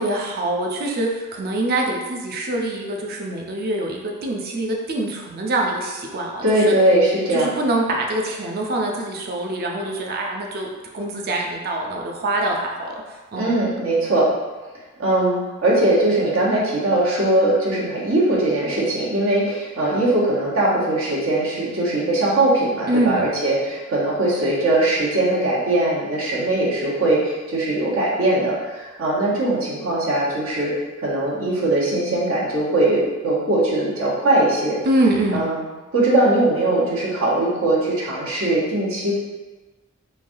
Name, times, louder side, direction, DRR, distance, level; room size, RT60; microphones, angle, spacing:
voice 1, 0.0-6.7 7.3-10.7 10.9-13.5 22.9-23.3 34.8-35.4, right 2 dB, 50° right, 0 dB, 0.4 m, -24 dB
voice 2, 6.4-7.5 13.3-14.3 15.0-34.8 35.3-35.7 35.9-39.2, right 1 dB, 80° right, -6 dB, 0.9 m, -20 dB
3.2 x 2.2 x 2.5 m, 1.2 s
head